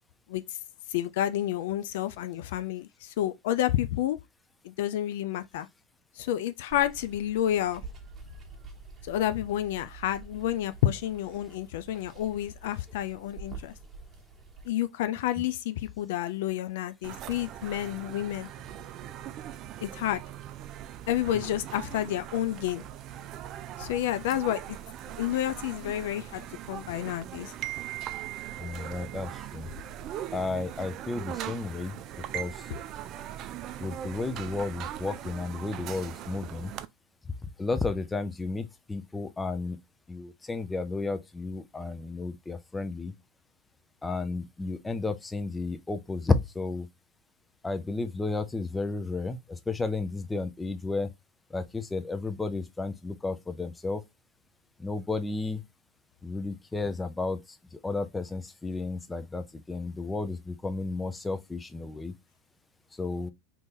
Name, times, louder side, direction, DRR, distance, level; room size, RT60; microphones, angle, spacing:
voice 1, 0.9-4.2 4.6-5.7 6.2-7.8 9.0-13.7 14.6-18.5 19.8-20.2 21.1-22.8 23.8-24.8 25.2-27.5, left 12 dB, 75° left, 0.3 m, -30 dB
Water, 6.7-14.7, right 4 dB, 30° right, 1.1 m, -47 dB
sound 1, 17.0-36.9, right 11 dB, 45° right, 0.3 m, -40 dB
voice 2, 28.6-29.7 30.3-32.0 32.3-32.6 33.8-36.7 37.6-39.8 40.1-43.1 44.0-46.9 47.6-51.1 51.5-54.0 54.8-55.6 56.2-57.4 57.7-62.1 63.0-63.3, left 3 dB, 15° left, 0.5 m, -32 dB
2.9 x 2.7 x 3.6 m
supercardioid pair, 110°, 0 cm